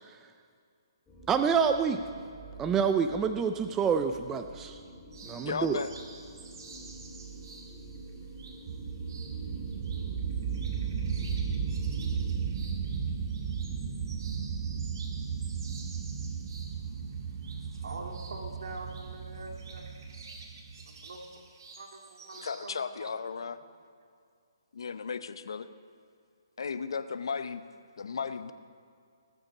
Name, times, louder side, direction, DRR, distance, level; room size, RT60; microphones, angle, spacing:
sound 1, 1.1-12.5, right 2 dB, 10° left, 2.2 m, -48 dB
voice 1, 1.3-2.0 2.6-4.8 5.2-5.8, right 6 dB, 10° right, 8 dB, 0.4 m, -27 dB
sound 2, 5.1-22.7, right 3 dB, 55° right, 2.0 m, -52 dB
voice 2, 5.4-5.9 22.4-23.6 24.7-25.7 26.6-27.6 28.0-28.5, left 5 dB, 75° left, 12 dB, 0.7 m, -35 dB
sound 3, 8.7-21.0, right 6 dB, 30° right, 1.1 m, -35 dB
voice 3, 17.6-20.0 20.9-21.3 21.8-23.5, right 2 dB, 70° right, 2 dB, 2.2 m, -45 dB
20.0 x 7.0 x 5.4 m, 2.2 s
hypercardioid pair, 155°, 3 cm